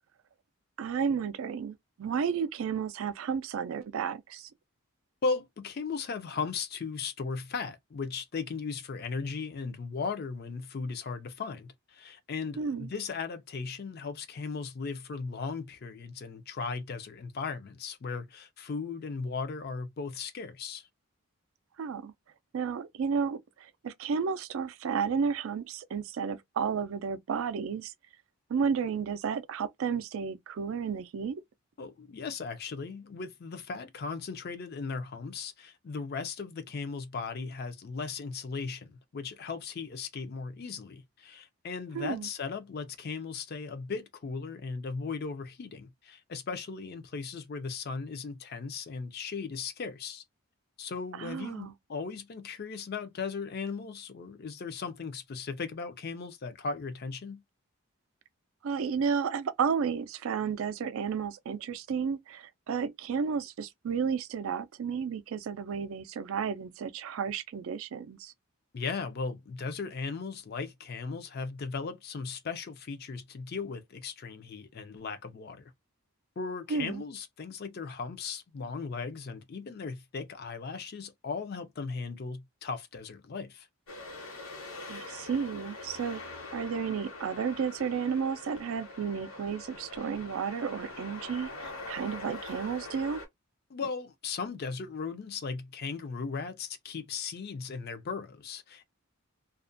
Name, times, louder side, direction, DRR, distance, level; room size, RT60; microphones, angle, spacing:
voice 1, 0.8-4.5 12.6-12.9 21.8-22.1 22.5-27.9 28.5-31.4 41.9-42.3 51.2-51.7 58.6-68.3 76.7-77.0 84.9-86.2 86.5-93.2, right 6 dB, 65° right, 0.3 m, -32 dB
voice 2, 5.2-20.9 31.8-50.2 50.8-57.4 68.7-75.7 76.4-83.7 93.7-98.8, left 4 dB, 45° left, 0.4 m, -37 dB
sound 1, 83.9-93.3, left 2 dB, 70° left, 1.1 m, -43 dB
2.4 x 2.1 x 2.5 m
head